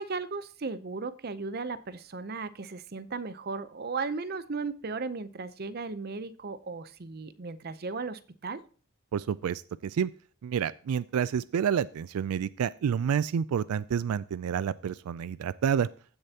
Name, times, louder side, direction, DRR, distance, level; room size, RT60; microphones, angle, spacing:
voice 1, 0.0-8.6, right 4 dB, 45° right, 14 dB, 0.6 m, -36 dB
voice 2, 9.1-10.1 10.4-15.9, right 8 dB, 90° right, 18 dB, 0.3 m, -29 dB
15.0 x 6.7 x 2.8 m, 0.40 s
head